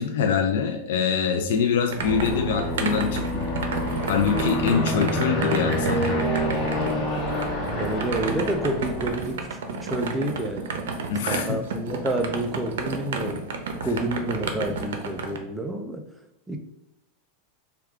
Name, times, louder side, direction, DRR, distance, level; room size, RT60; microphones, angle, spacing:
voice 1, 0.0-3.5 4.1-6.3 11.1-11.6, left 6 dB, 70° left, 4 dB, 0.4 m, -24 dB
sound 1, 1.4-15.4, right 4 dB, 85° right, 0.6 m, -32 dB
Aircraft, 2.0-9.3, equal, 15° left, 1.0 m, -27 dB
voice 2, 7.8-10.8 11.3-13.5 13.8-16.0 16.5-16.6, right 1 dB, 5° right, 4 dB, 0.4 m, -29 dB
4.6 x 2.3 x 3.5 m, 0.84 s
supercardioid pair, 155°, 0 cm